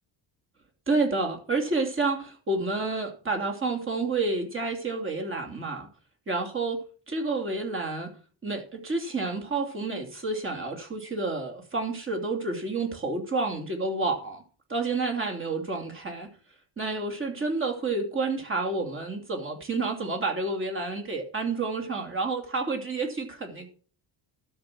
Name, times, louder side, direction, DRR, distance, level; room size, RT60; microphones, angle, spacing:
voice 1, 0.9-5.9 6.3-6.8 7.1-8.1 8.4-14.4 14.7-16.3 16.8-23.7, right 3 dB, 25° right, 4 dB, 2.9 m, -29 dB
12.5 x 6.1 x 6.2 m, 0.39 s
cardioid pair, 125°, 47 cm